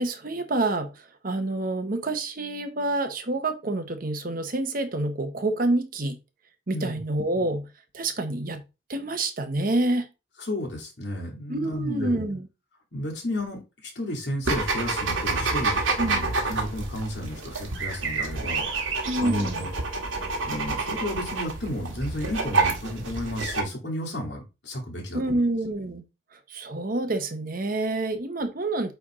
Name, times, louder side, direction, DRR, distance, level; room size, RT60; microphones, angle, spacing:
voice 1, 0.0-6.2 6.7-7.7 7.9-8.6 8.9-10.1 11.5-12.5 16.0-16.2 19.1-19.7 25.1-26.0 26.3-28.9, right 2 dB, 45° right, 8 dB, 0.9 m, -27 dB
voice 2, 10.4-12.2 12.9-19.8 20.5-25.4, left 1 dB, 60° left, 0 dB, 2.7 m, -33 dB
sound 1, 14.4-23.6, right 3 dB, 90° right, 1.7 m, -28 dB
8.8 x 3.5 x 3.7 m, 0.28 s
head